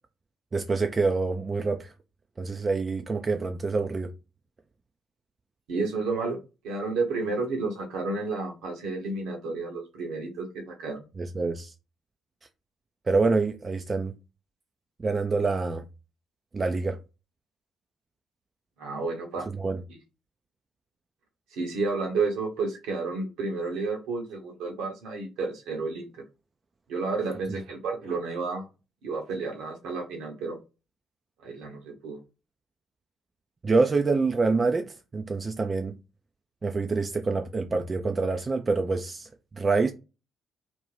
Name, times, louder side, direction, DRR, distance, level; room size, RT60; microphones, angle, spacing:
voice 1, 0.5-1.9 2.4-4.1 11.2-11.7 13.1-14.2 15.0-15.9 16.5-17.0 19.6-19.8 27.5-27.6 33.6-36.0 36.6-39.9, right 3 dB, 30° right, 0.3 m, -26 dB
voice 2, 5.7-6.4 6.6-11.0 18.8-19.5 21.5-26.1 26.9-28.7 29.0-30.6 31.4-32.2, right 3 dB, 65° right, 0.8 m, -31 dB
2.5 x 2.2 x 3.1 m
figure-of-eight pair, 45°, 0 cm